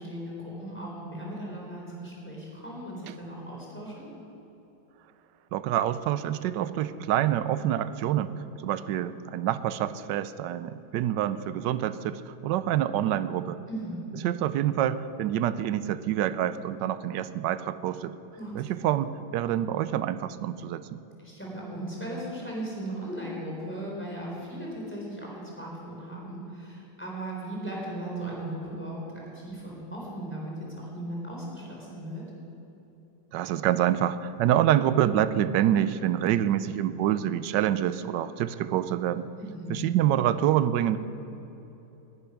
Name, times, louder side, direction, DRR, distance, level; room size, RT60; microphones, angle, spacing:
voice 1, 0.0-4.1 13.7-14.0 18.4-18.5 21.2-32.2 39.4-39.7, right 1 dB, 5° left, -4 dB, 4.2 m, -37 dB
voice 2, 5.5-13.6 14.2-18.1 18.5-21.0 33.3-39.3 39.7-41.0, right 11 dB, 75° right, 14 dB, 1.2 m, -26 dB
12.0 x 10.5 x 10.0 m, 3.0 s
omnidirectional pair, 2.2 m